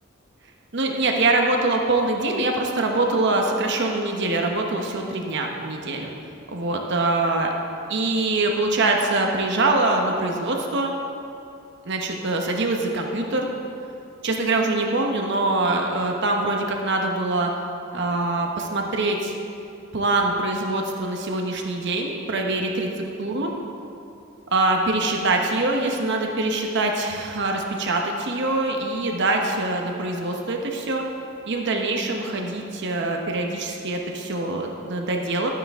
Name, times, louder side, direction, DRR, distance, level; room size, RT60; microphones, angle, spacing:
voice 1, 0.7-6.1 6.5-7.5 7.9-10.9 11.8-13.5 14.2-17.5 17.9-19.3 19.9-22.9 23.2-23.5 24.5-31.0 31.4-35.5, right 2 dB, 60° right, 2 dB, 0.9 m, -24 dB
12.0 x 9.1 x 3.6 m, 2.6 s
head